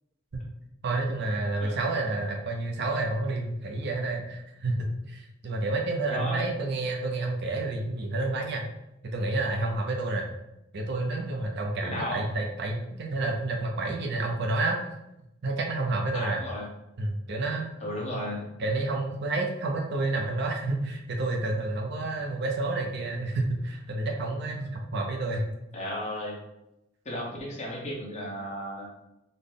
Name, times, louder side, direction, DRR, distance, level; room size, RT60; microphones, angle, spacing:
voice 1, 0.8-8.7 9.0-10.3 10.7-14.8 15.4-16.4 17.0-17.7 18.6-25.4, right 2 dB, 55° right, 2 dB, 0.5 m, -29 dB
voice 2, 6.1-6.5 11.8-12.2 16.1-16.7 17.8-18.5 25.7-26.4 27.0-28.9, equal, 35° left, -3 dB, 1.0 m, -34 dB
4.0 x 2.1 x 3.3 m, 0.88 s
head